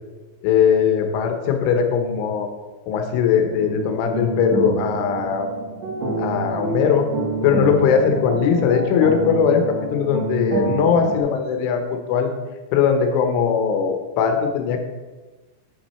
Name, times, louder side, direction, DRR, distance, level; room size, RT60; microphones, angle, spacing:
voice 1, 0.4-2.5 2.9-5.5 6.2-7.1 7.4-12.3 12.7-14.8, left 7 dB, 85° left, 4 dB, 3.5 m, -20 dB
sound 1, 3.5-11.2, right 3 dB, 60° right, 2.7 m, -27 dB
9.1 x 7.7 x 4.3 m, 1.2 s
omnidirectional pair, 5.5 m